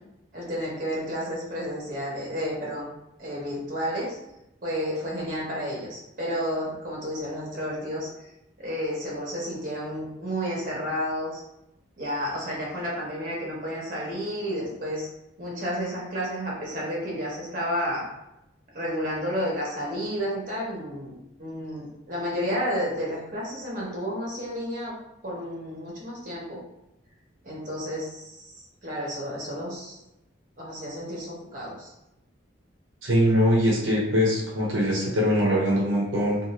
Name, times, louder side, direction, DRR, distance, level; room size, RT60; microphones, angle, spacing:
voice 1, 0.3-2.9 3.2-4.2 4.6-8.1 8.6-11.4 12.0-15.1 15.4-18.1 18.7-24.9 25.2-26.6 27.4-28.4 28.8-30.0 30.6-31.9, equal, 45° right, -5 dB, 1.0 m, -31 dB
voice 2, 33.0-36.4, equal, 85° right, -4 dB, 0.8 m, -22 dB
2.5 x 2.4 x 3.0 m, 0.88 s
head